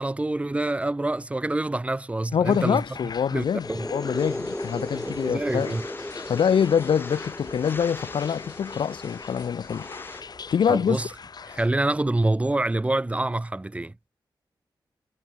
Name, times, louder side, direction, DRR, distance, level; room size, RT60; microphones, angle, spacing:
voice 1, 0.0-2.8 3.3-3.9 5.0-5.8 10.7-11.1 11.5-14.1, right 2 dB, 15° right, 1.6 m, -26 dB
voice 2, 2.3-5.8 6.3-9.9 10.5-11.0, left 7 dB, 85° left, 0.9 m, -25 dB
sound 1, 2.4-11.7, left 5 dB, 50° left, 2.8 m, -43 dB
sound 2, 3.5-11.0, left 1 dB, 5° left, 0.4 m, -37 dB
sound 3, 4.2-10.2, left 3 dB, 25° left, 1.8 m, -44 dB
wide cardioid pair, 180°, 9 cm